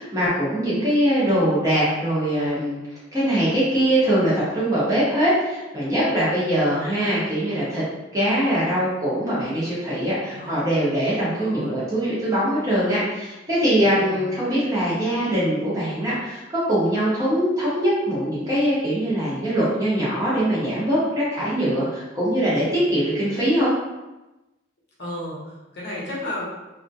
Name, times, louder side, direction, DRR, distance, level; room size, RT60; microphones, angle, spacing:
voice 1, 0.0-2.8 3.1-7.8 8.1-16.4 16.7-23.7, equal, 20° right, -9 dB, 0.8 m, -22 dB
voice 2, 6.4-7.0 10.3-10.6 11.2-11.8 13.8-14.3 25.0-26.5, left 1 dB, 60° left, -6 dB, 0.7 m, -34 dB
2.3 x 2.1 x 2.7 m, 1.0 s
head